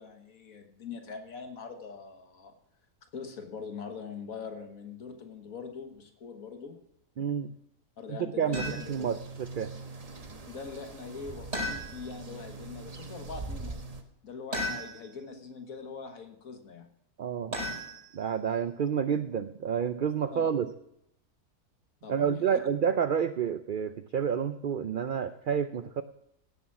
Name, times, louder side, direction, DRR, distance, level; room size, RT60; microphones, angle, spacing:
voice 1, 0.0-2.5 3.1-6.8 8.0-9.1 10.5-13.8 14.2-16.9 20.3-20.5 22.0-22.6, left 5 dB, 75° left, 6 dB, 1.8 m, -43 dB
voice 2, 7.2-7.5 8.1-9.7 17.2-17.6 18.1-20.7 22.1-26.0, right 7 dB, 75° right, 12 dB, 0.4 m, -29 dB
sound 1, 8.5-14.0, right 3 dB, 30° right, 1.0 m, -43 dB
sound 2, 8.5-9.1 11.5-12.2 14.5-15.2 17.5-18.4, left 1 dB, 45° right, 5.9 m, -35 dB
16.0 x 7.1 x 6.0 m, 0.78 s
omnidirectional pair, 1.5 m